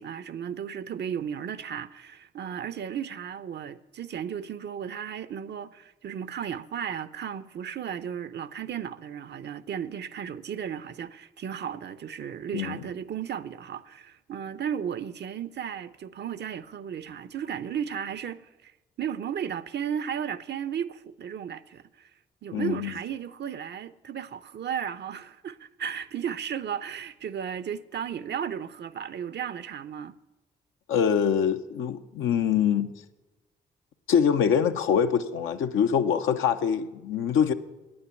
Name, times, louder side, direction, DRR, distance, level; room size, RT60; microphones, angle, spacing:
voice 1, 0.0-18.7 19.0-22.1 22.4-30.1, right 8 dB, 55° right, 0.6 m, -34 dB
voice 2, 12.5-12.8 22.5-22.9 30.9-32.9 34.1-37.5, left 8 dB, 75° left, 0.7 m, -24 dB
9.4 x 8.7 x 8.3 m
hypercardioid pair, 45°, 21 cm